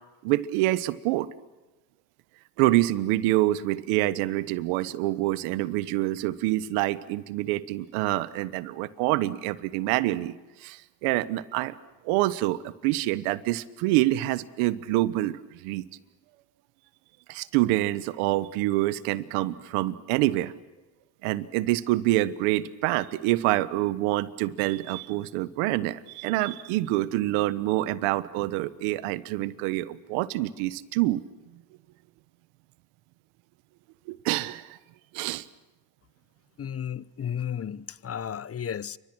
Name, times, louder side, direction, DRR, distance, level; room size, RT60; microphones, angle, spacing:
voice 1, 0.2-1.3 2.6-10.3 10.6-11.7 12.0-15.8 17.3-20.5 21.2-31.2 34.1-34.8 35.1-35.4, right 16 dB, 85° right, 1.3 m, -26 dB
voice 2, 36.6-39.0, left 8 dB, 30° left, 0.7 m, -33 dB
29.0 x 25.0 x 6.3 m
supercardioid pair, 85°, 49 cm